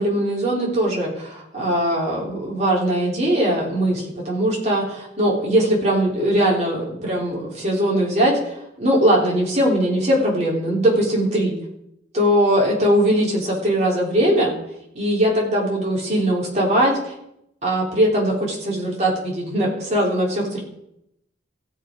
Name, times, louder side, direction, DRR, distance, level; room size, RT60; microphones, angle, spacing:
voice 1, 0.0-11.6 12.1-14.5 15.0-17.1 17.6-20.6, right 1 dB, 35° right, -3 dB, 3.5 m, -20 dB
15.5 x 7.7 x 5.1 m, 0.81 s
head